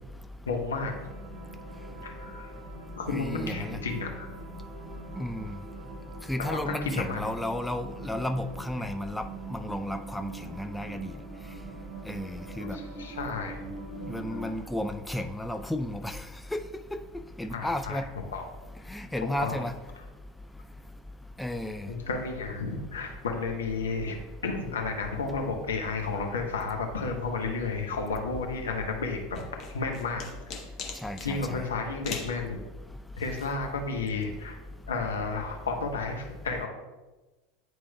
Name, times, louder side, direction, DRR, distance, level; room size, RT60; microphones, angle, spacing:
voice 1, 0.5-0.9 2.0-2.5 3.0-4.3 6.4-7.3 12.6-13.7 14.3-14.5 17.5-18.4 19.4-19.6 21.9-24.2 24.4-29.4 29.7-30.6 31.2-32.6 33.2-34.6 34.9-36.7, left 4 dB, 75° left, 3 dB, 0.9 m, -32 dB
sound 1, 0.8-14.5, right 4 dB, 45° right, 1.5 m, -43 dB
voice 2, 3.1-3.8 5.2-5.5 6.3-11.1 12.1-12.8 14.0-16.2 16.5-16.6 17.4-18.1 18.9-19.7 21.4-21.9 31.0-31.6, left 1 dB, 5° left, 7 dB, 0.3 m, -33 dB
sound 2, 29.3-31.3 32.0-32.4, left 6 dB, 40° left, 1.0 m, -38 dB
9.5 x 4.7 x 2.2 m, 1.2 s
figure-of-eight pair, 80°, 0 cm